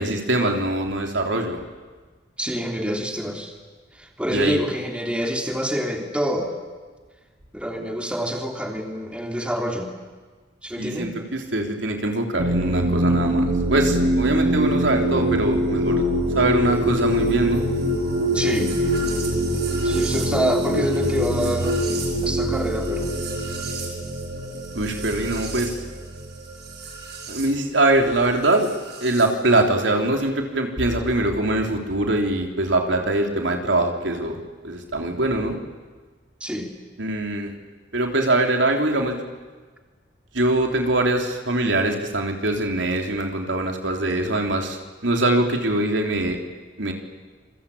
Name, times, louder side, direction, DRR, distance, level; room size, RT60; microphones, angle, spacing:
voice 1, 0.0-1.6 4.3-4.6 10.8-16.0 16.3-17.6 24.7-25.7 27.3-28.7 29.0-34.4 34.6-35.6 37.0-37.5 37.9-39.2 40.3-46.4 46.8-46.9, right 2 dB, 90° right, 3 dB, 3.5 m, -23 dB
voice 2, 2.4-3.5 3.9-6.5 7.5-9.9 10.6-11.1 18.3-18.7 19.8-21.8 22.2-23.1 36.4-36.7, equal, 5° right, 2 dB, 3.3 m, -26 dB
sound 1, 12.4-27.5 28.6-29.2, right 1 dB, 65° right, 6.5 m, -24 dB
27.5 x 23.5 x 8.6 m, 1.4 s
head